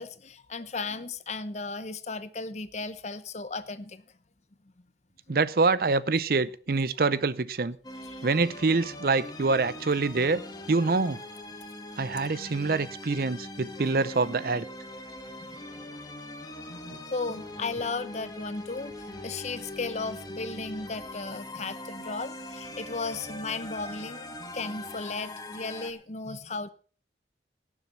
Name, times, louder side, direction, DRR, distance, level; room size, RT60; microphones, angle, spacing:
voice 1, 0.0-4.0 8.0-8.2 15.5-15.8 16.7-26.7, left 3 dB, 40° left, 13 dB, 0.9 m, -35 dB
voice 2, 5.3-7.8 8.2-10.4 10.7-11.2 12.0-14.7, right 3 dB, 55° right, 17 dB, 0.6 m, -25 dB
sound 1, 7.8-25.9, left 1 dB, 20° left, 1.6 m, -42 dB
17.5 x 7.3 x 5.6 m, 0.40 s
head